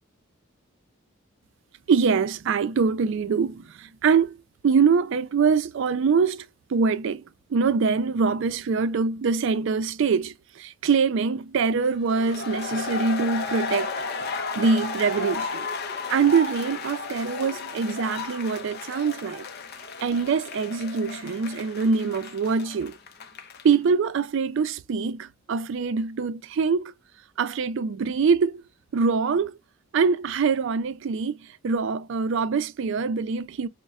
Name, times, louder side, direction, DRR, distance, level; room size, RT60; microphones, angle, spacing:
voice 1, 1.9-4.4 4.6-7.2 7.5-13.9 14.5-15.7 16.1-19.5 20.0-23.0 23.6-26.9 27.4-28.6 28.9-29.6 29.9-33.7, right 5 dB, 60° right, 0.4 m, -24 dB
sound 1, 12.1-23.8, left 4 dB, 50° left, 0.5 m, -34 dB
5.1 x 2.1 x 2.3 m
head